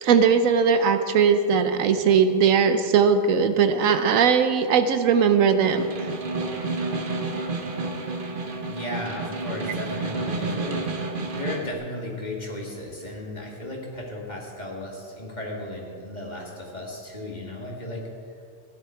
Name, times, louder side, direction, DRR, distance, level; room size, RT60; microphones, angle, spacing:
voice 1, 0.0-5.9, right 6 dB, 80° right, 9 dB, 1.1 m, -19 dB
Snare drum, 5.6-11.7, right 3 dB, 45° right, 1.2 m, -30 dB
voice 2, 8.7-10.8 11.3-18.1, left 1 dB, 30° left, -1 dB, 2.0 m, -35 dB
15.5 x 10.5 x 4.4 m, 2.3 s
omnidirectional pair, 1.4 m